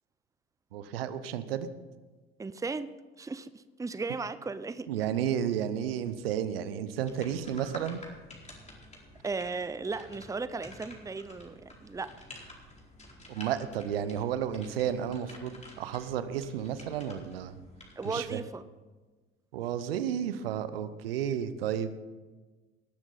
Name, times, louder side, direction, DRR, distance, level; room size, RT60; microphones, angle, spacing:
voice 1, 0.7-1.7 4.9-8.0 13.3-17.6 18.0-18.4 19.5-22.0, right 9 dB, 75° right, 13 dB, 0.9 m, -32 dB
voice 2, 2.4-2.9 3.2-4.9 9.2-12.1 18.0-18.6, right 4 dB, 10° right, 14 dB, 0.7 m, -36 dB
sound 1, 7.0-18.2, left 1 dB, 25° left, 4.5 m, -50 dB
20.0 x 12.5 x 4.1 m, 1.3 s
figure-of-eight pair, 60°, 30 cm